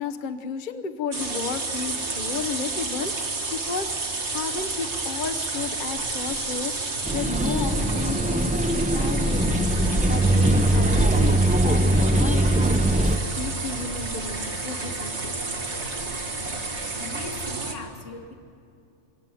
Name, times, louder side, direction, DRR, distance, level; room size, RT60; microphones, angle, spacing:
voice 1, 0.0-15.1, left 5 dB, 45° left, 7 dB, 1.0 m, -33 dB
sound 1, 1.1-17.8, right 3 dB, 65° right, 2.2 m, -30 dB
sound 2, 7.1-13.2, right 1 dB, 10° right, 0.5 m, -21 dB
voice 2, 17.0-18.3, left 2 dB, 80° left, 4 dB, 2.3 m, -39 dB
24.0 x 16.0 x 9.0 m, 2.6 s
omnidirectional pair, 1.2 m